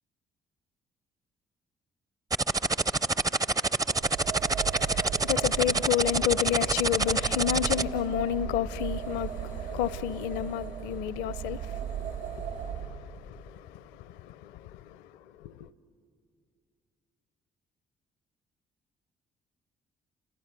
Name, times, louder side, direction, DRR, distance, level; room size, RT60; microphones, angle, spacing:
sound 1, 2.3-7.8, right 3 dB, 20° right, 0.6 m, -26 dB
sound 2, 3.8-12.9, right 8 dB, 75° right, 3.9 m, -37 dB
voice 1, 4.6-15.7, left 11 dB, 70° left, 0.7 m, -31 dB
29.5 x 27.0 x 6.8 m
hypercardioid pair, 45°, 19 cm